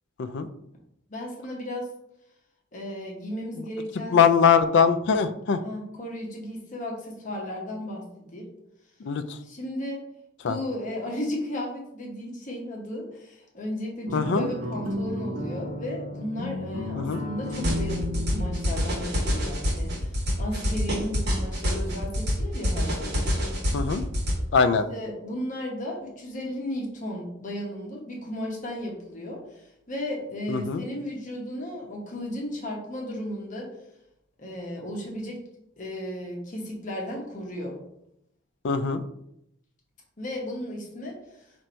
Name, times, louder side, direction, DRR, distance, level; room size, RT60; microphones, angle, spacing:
voice 1, 1.1-1.9 2.7-4.2 5.6-8.0 8.3-8.5 9.4-10.0 10.4-23.3 24.9-33.7 34.4-35.4 35.8-37.8 40.2-41.5, left 1 dB, 40° left, -1 dB, 0.9 m, -34 dB
voice 2, 4.1-5.6 9.0-9.2 10.4-10.6 14.1-14.5 17.0-17.2 23.7-24.0 24.5-24.9 30.5-30.8 38.6-39.0, left 6 dB, 55° left, 10 dB, 0.3 m, -21 dB
sound 1, 14.1-20.0, left 1 dB, 85° right, 0.9 m, -34 dB
sound 2, 17.5-24.3, equal, 55° right, 1.2 m, -27 dB
4.4 x 2.6 x 4.3 m, 0.79 s
head